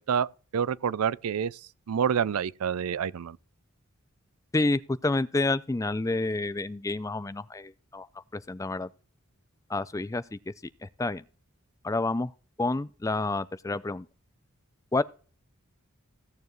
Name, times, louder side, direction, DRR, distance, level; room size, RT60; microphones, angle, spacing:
voice 1, 0.0-1.6 1.9-3.4, right 7 dB, 90° right, 0.4 m, -28 dB
voice 2, 4.5-8.1 8.3-8.9 9.7-10.5 10.8-11.2 11.8-12.3 12.6-14.1 14.9-15.0, left 2 dB, 15° left, 0.4 m, -29 dB
16.5 x 7.1 x 3.1 m
head